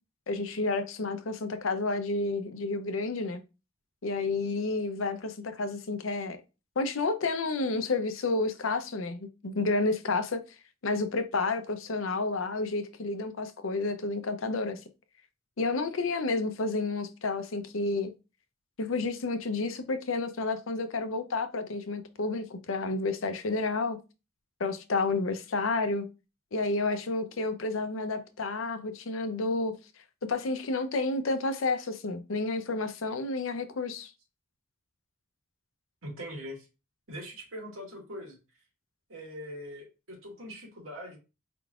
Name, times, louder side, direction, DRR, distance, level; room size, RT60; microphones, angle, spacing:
voice 1, 0.3-3.4 4.0-6.4 6.8-10.4 10.8-14.8 15.6-18.1 18.8-24.0 24.6-26.1 26.5-29.7 30.2-34.1, left 3 dB, 70° left, 0.7 m, -30 dB
voice 2, 36.0-36.7 37.1-38.4 39.1-41.2, equal, 75° right, 2.0 m, -42 dB
4.6 x 3.7 x 2.4 m
head